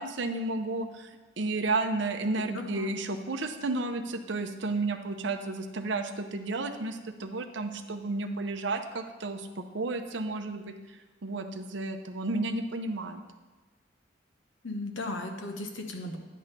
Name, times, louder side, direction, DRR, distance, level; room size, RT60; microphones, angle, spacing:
voice 1, 0.0-11.0 11.2-13.2, right 2 dB, 65° right, 7 dB, 0.7 m, -32 dB
voice 2, 2.5-2.9 14.6-16.2, left 2 dB, 85° left, 3 dB, 1.1 m, -36 dB
10.0 x 3.7 x 6.7 m, 1.3 s
head